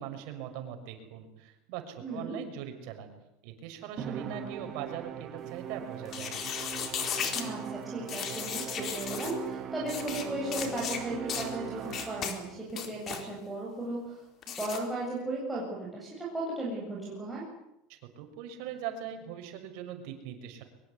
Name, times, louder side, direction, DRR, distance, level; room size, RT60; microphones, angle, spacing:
voice 1, 0.0-3.1 3.4-6.4 17.9-20.6, right 9 dB, 60° right, 6 dB, 6.2 m, -41 dB
voice 2, 2.0-2.3 7.3-14.2 14.6-17.4, right 1 dB, 5° right, -5 dB, 8.0 m, -36 dB
Musical instrument, 4.0-12.5, right 9 dB, 35° right, 2.2 m, -40 dB
sound 1, 6.1-7.5 8.1-9.3 9.9-10.2 10.5-11.0 11.3-11.5 11.9-12.3 12.7-13.2 14.4-14.8, left 8 dB, 35° left, 4.3 m, -35 dB
23.5 x 23.0 x 9.7 m, 0.84 s
supercardioid pair, 140°, 0 cm